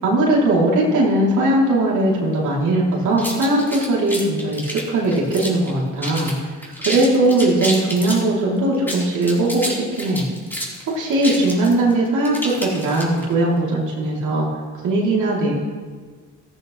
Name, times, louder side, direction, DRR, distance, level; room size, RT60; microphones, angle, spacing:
voice 1, 0.0-6.3 6.8-10.2 10.9-14.5 14.8-15.6, right 1 dB, 75° right, -4 dB, 3.3 m, -19 dB
sound 1, 3.2-5.7 6.0-6.3 6.6-8.3 8.7-13.3, equal, 5° left, 4.1 m, -29 dB
14.5 x 14.5 x 3.3 m, 1.5 s
cardioid pair, 90°, 30 cm